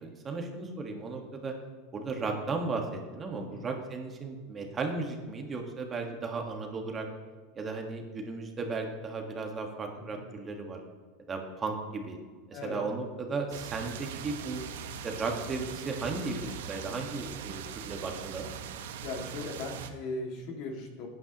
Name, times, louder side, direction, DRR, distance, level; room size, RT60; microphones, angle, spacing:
voice 1, 0.0-1.5 1.9-7.1 7.5-10.8 11.3-12.2 12.5-14.6 15.0-18.5, right 3 dB, 25° right, 3 dB, 1.6 m, -35 dB
voice 2, 12.5-12.8 19.0-21.1, left 2 dB, 55° left, 2 dB, 2.2 m, -38 dB
sound 1, 13.5-19.9, right 7 dB, 80° right, 0.8 m, -41 dB
12.5 x 9.4 x 3.0 m, 1.4 s
supercardioid pair, 115°, 0 cm